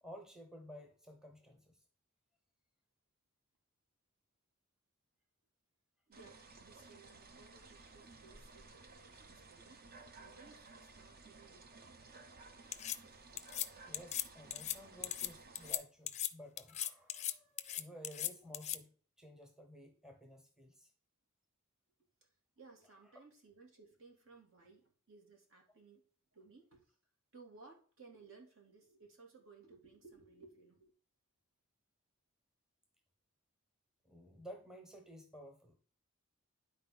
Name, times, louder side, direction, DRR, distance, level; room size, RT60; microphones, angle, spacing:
voice 1, 0.0-1.8 13.4-13.5 13.8-20.9 34.0-35.8, equal, 5° right, 4 dB, 1.0 m, -54 dB
sound 1, 6.1-15.7, right 3 dB, 45° right, 0.9 m, -57 dB
voice 2, 6.1-9.8 10.2-12.0 17.8-18.0 22.2-26.0 26.3-27.0 27.3-30.9, right 4 dB, 65° right, 0 dB, 2.9 m, -60 dB
sound 2, 12.7-13.0 13.4-13.7 13.9-14.2 14.5-14.8 15.0-15.3 15.5-15.8 16.1-16.3 16.6-17.3 17.6-18.8, left 12 dB, 30° left, 0.5 m, -38 dB
10.5 x 4.4 x 5.5 m, 0.43 s
head